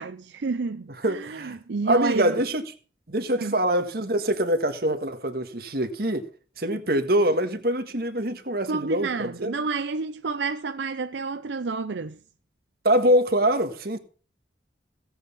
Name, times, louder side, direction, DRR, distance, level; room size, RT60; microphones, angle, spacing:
voice 1, 0.0-2.4 3.4-3.6 8.7-12.2, right 4 dB, 85° right, 0.6 m, -30 dB
voice 2, 1.0-1.6 1.9-2.6 3.1-6.3 6.6-9.5 12.8-14.0, right 1 dB, 55° right, 1.7 m, -24 dB
16.5 x 8.0 x 5.5 m
head